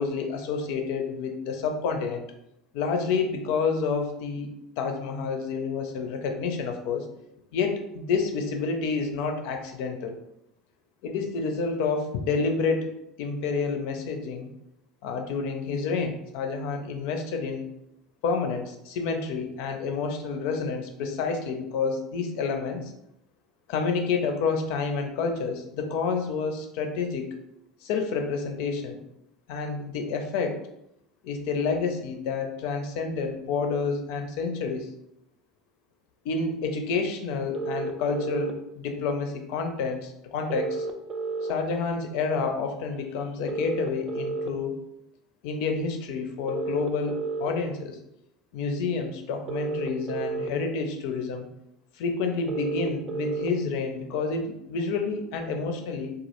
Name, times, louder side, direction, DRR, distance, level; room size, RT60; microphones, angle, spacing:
voice 1, 0.0-2.2 2.7-4.5 4.8-7.1 7.5-10.2 11.0-12.9 13.2-14.5 15.0-17.7 18.2-22.9 23.7-27.3 27.8-29.0 29.5-30.6 31.2-34.9 36.2-40.9 41.5-44.8 45.4-48.0 48.5-51.5 52.0-56.1, left 4 dB, 70° left, 4 dB, 0.4 m, -29 dB
sound 1, 37.5-38.5 40.5-41.5 43.5-44.5 46.5-47.5 49.5-50.5 52.5-53.5, right 4 dB, 45° right, 0.3 m, -31 dB
2.2 x 2.0 x 2.9 m, 0.79 s
hypercardioid pair, 75°, 0 cm